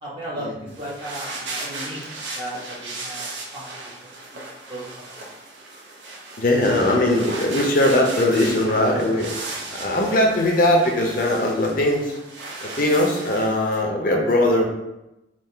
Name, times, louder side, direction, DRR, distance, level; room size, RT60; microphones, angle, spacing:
voice 1, 0.0-2.0 2.4-3.8 4.3-4.4 4.7-5.0, right 1 dB, 25° right, -6 dB, 1.0 m, -35 dB
sound 1, 0.7-13.8, right 2 dB, 85° right, 0.7 m, -36 dB
voice 2, 6.4-9.3 9.7-12.1 12.6-14.6, left 1 dB, 50° left, 0 dB, 0.6 m, -20 dB
3.7 x 2.4 x 4.4 m, 0.92 s
head